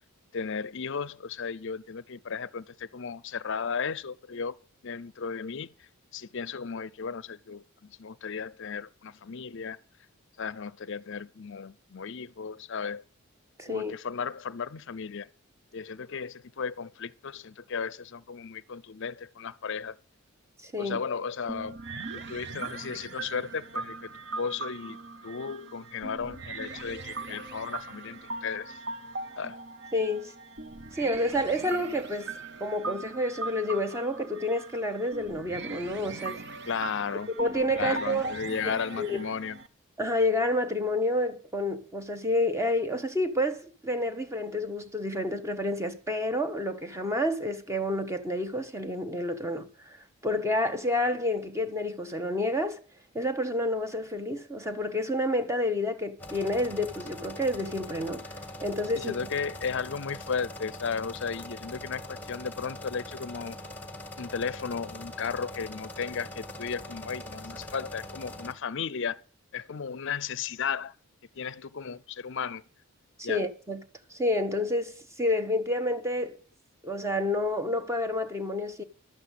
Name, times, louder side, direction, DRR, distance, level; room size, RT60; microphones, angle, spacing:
voice 1, 0.3-4.6 4.8-9.8 10.4-13.0 13.7-15.3 15.7-20.0 20.8-21.8 22.1-24.1 24.4-28.8 29.4-29.6 36.7-37.3 37.7-39.6 58.9-63.6 64.2-69.2 69.5-70.9 71.3-72.6 73.2-73.4, left 6 dB, 55° left, 0.5 m, -35 dB
voice 2, 13.6-14.0 20.6-21.0 29.9-30.3 30.9-32.3 32.6-36.4 37.4-38.3 39.0-39.2 40.0-50.0 50.2-52.8 53.1-58.3 58.6-59.2 73.2-73.8 74.1-76.4 76.8-78.8, left 1 dB, 15° right, 1.0 m, -29 dB
sound 1, 21.5-39.7, right 3 dB, 50° right, 1.0 m, -40 dB
sound 2, 56.2-68.5, left 1 dB, 5° left, 1.7 m, -42 dB
12.0 x 7.8 x 8.2 m
head